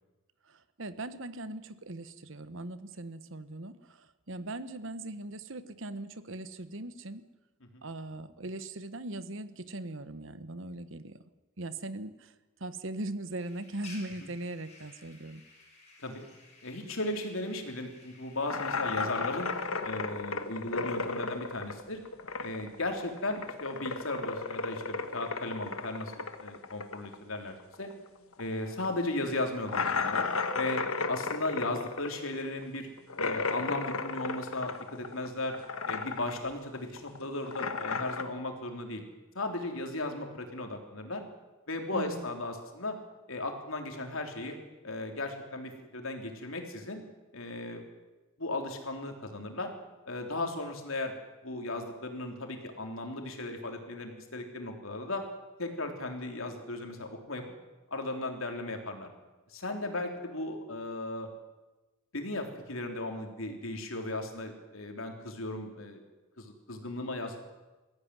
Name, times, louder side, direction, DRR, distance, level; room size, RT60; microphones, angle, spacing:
voice 1, 0.5-7.3 7.8-11.2 11.6-12.3 12.6-15.4 41.9-42.2, right 2 dB, 65° right, 13 dB, 1.2 m, -40 dB
sound 1, 13.4-19.7, left 3 dB, 30° left, 5.9 m, -55 dB
voice 2, 16.6-19.5 19.8-22.0 22.4-27.9 28.4-30.3 30.5-30.8 31.1-32.9 33.2-35.6 35.9-39.0 39.4-41.2 41.7-43.0 43.3-44.6 44.8-47.0 47.3-47.8 48.4-49.7 50.1-51.1 51.4-55.2 55.6-57.4 57.9-59.1 59.5-61.3 62.1-66.0 66.4-67.5, left 2 dB, 75° left, 3 dB, 3.6 m, -36 dB
sound 2, 18.5-22.8 23.0-28.1 28.3-28.4 28.8-28.9 29.7-35.3 35.5-36.5 36.7-38.2, left 4 dB, 90° left, 1.5 m, -34 dB
22.0 x 15.0 x 9.7 m, 1.1 s
head